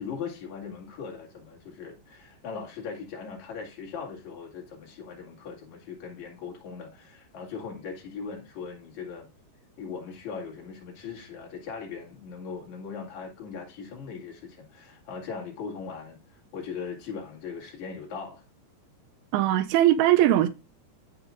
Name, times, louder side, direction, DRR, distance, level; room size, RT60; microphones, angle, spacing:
voice 1, 0.0-9.3 9.8-18.4, left 5 dB, 50° left, 3.1 m, -39 dB
voice 2, 19.3-20.5, right 13 dB, 90° right, 2.1 m, -20 dB
14.5 x 5.1 x 2.5 m
omnidirectional pair, 5.0 m